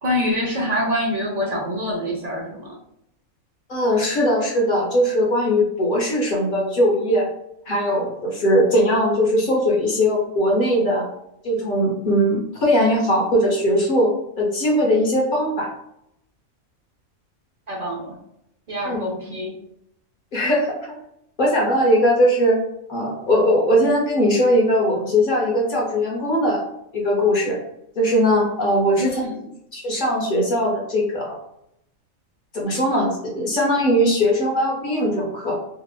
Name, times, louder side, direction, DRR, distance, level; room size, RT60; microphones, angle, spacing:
voice 1, 0.0-2.8 17.7-18.2 18.7-19.5 29.0-29.5, left 1 dB, 55° right, -3 dB, 0.4 m, -25 dB
voice 2, 3.7-7.3 7.7-11.1 11.4-14.1 14.4-15.7 18.9-19.0 20.3-20.8 21.4-22.6 22.9-26.6 26.9-27.6 28.0-29.2 29.7-31.4 32.5-35.5, equal, 45° left, -2 dB, 0.8 m, -20 dB
2.8 x 2.3 x 2.3 m, 0.78 s
omnidirectional pair, 1.4 m